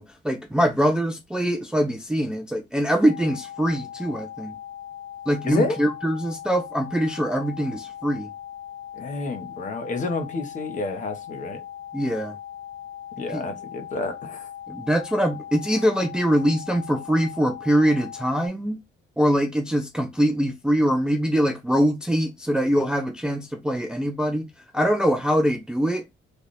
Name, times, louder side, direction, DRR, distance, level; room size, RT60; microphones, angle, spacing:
voice 1, 0.0-4.5 5.3-8.3 11.9-12.4 13.3-13.4 14.7-18.8 19.2-24.4 24.7-26.0, equal, 5° right, 0.4 m, -23 dB
sound 1, 3.0-18.5, left 10 dB, 65° left, 1.0 m, -39 dB
voice 2, 5.4-5.8 9.0-11.6 13.2-14.5, left 3 dB, 40° left, 0.9 m, -29 dB
3.4 x 2.4 x 4.0 m
cardioid pair, 140°, 20 cm